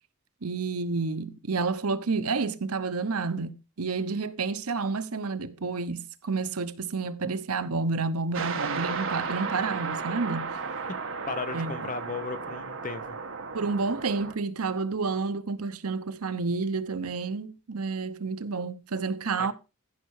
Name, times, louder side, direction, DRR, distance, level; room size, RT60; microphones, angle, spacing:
voice 1, 0.4-10.6 11.5-11.8 13.5-19.5, right 4 dB, 85° right, 0.9 m, -30 dB
sound 1, 8.3-14.3, right 5 dB, 60° right, 1.5 m, -34 dB
voice 2, 11.3-13.2 19.4-19.5, left 4 dB, 40° left, 1.0 m, -35 dB
15.0 x 5.5 x 4.8 m
head